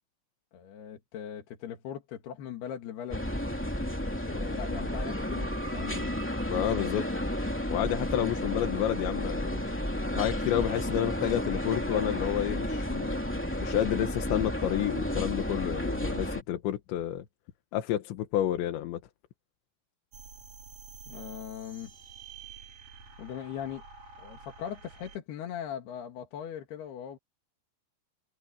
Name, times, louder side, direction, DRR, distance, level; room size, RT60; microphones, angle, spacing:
voice 1, 0.5-3.3 4.2-6.2 21.1-21.9 23.2-23.8 24.2-27.2, left 9 dB, 70° left, 3.8 m, -40 dB
sound 1, 3.1-16.4, left 1 dB, 5° left, 1.1 m, -32 dB
voice 2, 6.5-7.1 7.7-9.6 10.2-13.1 13.6-17.3 17.7-19.0, left 12 dB, 90° left, 3.7 m, -30 dB
sound 2, 20.1-25.2, right 5 dB, 40° right, 5.1 m, -49 dB
omnidirectional pair, 5.0 m